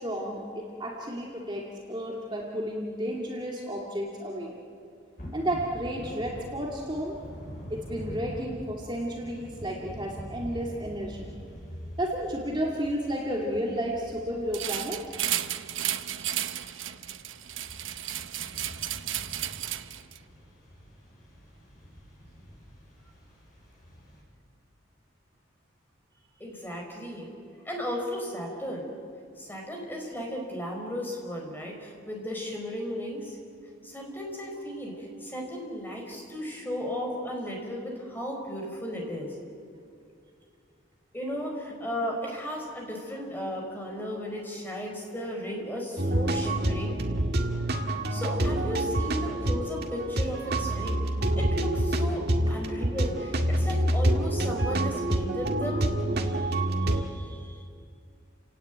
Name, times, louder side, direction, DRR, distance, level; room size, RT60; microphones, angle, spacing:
voice 1, 0.0-4.5 5.3-7.2 7.7-11.3 12.0-15.0, equal, 25° right, -2 dB, 2.4 m, -32 dB
Thunder / Rain, 5.2-24.2, equal, 45° left, 7.9 m, -45 dB
sound 1, 14.5-20.2, right 12 dB, 85° right, 0.9 m, -33 dB
voice 2, 26.4-27.3 27.6-28.8 29.4-33.4 33.8-39.3 41.1-46.9 48.1-51.1 51.4-55.9 56.2-57.6, equal, 10° left, 0 dB, 4.9 m, -35 dB
sound 2, 46.0-57.0, right 1 dB, 55° right, 1.9 m, -27 dB
30.0 x 17.5 x 9.3 m, 2.4 s
head